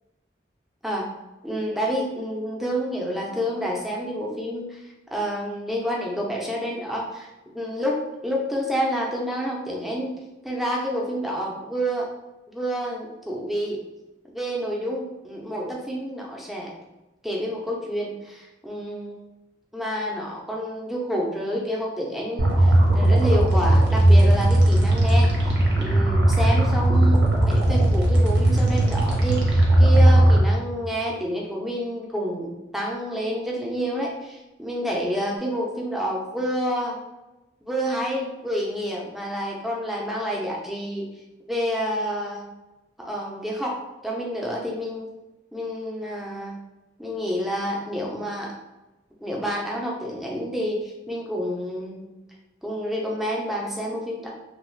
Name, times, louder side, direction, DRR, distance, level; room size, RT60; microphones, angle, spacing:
voice 1, 1.4-4.8 5.1-10.2 10.4-12.1 12.5-13.8 14.3-16.7 17.2-19.3 19.7-37.0 37.7-41.1 41.5-42.5 43.0-45.1 45.5-46.6 47.0-48.5 49.2-52.1 52.6-54.3, equal, ahead, -3 dB, 0.5 m, -29 dB
sound 1, 22.4-30.4, right 1 dB, 80° right, 0.9 m, -17 dB
2.9 x 2.3 x 3.1 m, 1.0 s
head